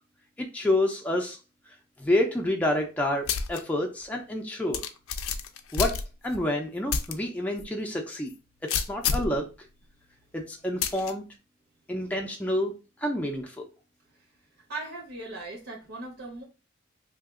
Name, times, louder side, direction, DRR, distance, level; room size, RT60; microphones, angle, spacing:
voice 1, 0.4-1.4 2.0-4.8 5.7-6.0 6.2-8.3 8.6-9.5 10.3-11.2 11.9-12.7 13.0-13.7, left 1 dB, 5° left, 1 dB, 0.4 m, -28 dB
sound 1, 3.3-3.6 4.0-4.1 4.7-6.4 6.9-7.1 7.6-7.7 8.7-9.4 10.8-11.1, left 6 dB, 90° left, 0.4 m, -29 dB
voice 2, 14.7-16.4, right 2 dB, 75° right, -1 dB, 0.9 m, -39 dB
2.8 x 2.3 x 3.5 m, 0.31 s
head